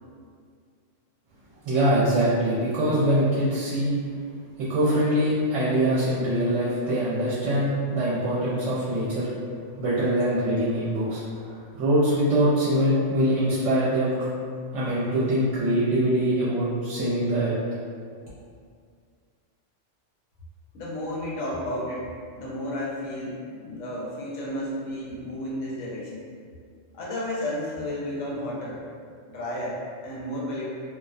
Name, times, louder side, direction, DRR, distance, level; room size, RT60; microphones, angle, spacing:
voice 1, 1.6-3.9 4.6-9.3 9.8-11.2 11.5-14.1 14.7-17.5, right 1 dB, 70° right, -9 dB, 0.9 m, -23 dB
voice 2, 20.7-22.1 22.3-26.2 26.9-28.8 29.3-30.7, left 1 dB, 75° left, -6 dB, 1.0 m, -32 dB
2.4 x 2.1 x 2.5 m, 2.1 s
omnidirectional pair, 1.3 m